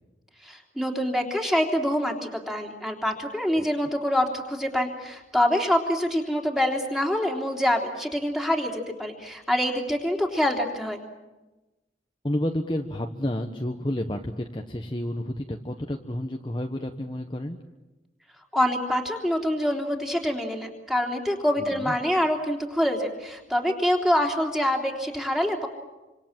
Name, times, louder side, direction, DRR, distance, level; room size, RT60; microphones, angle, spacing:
voice 1, 0.4-11.0 18.5-25.7, equal, ahead, 1 dB, 3.4 m, -25 dB
voice 2, 12.2-17.6 21.6-21.9, left 1 dB, 25° left, 3 dB, 1.2 m, -30 dB
27.5 x 26.0 x 7.5 m, 1.1 s
head